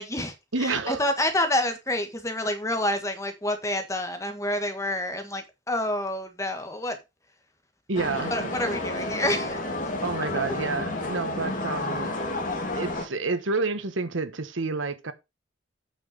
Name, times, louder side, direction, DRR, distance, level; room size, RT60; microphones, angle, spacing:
voice 1, 0.0-0.3 0.6-7.0 8.3-9.6, left 1 dB, 15° left, 1.7 m, -28 dB
voice 2, 0.5-1.1 7.9-8.6 10.0-12.1 12.8-15.1, right 3 dB, 85° right, 1.2 m, -29 dB
sound 1, 7.9-13.1, left 2 dB, 45° left, 2.3 m, -31 dB
8.9 x 6.0 x 5.1 m
head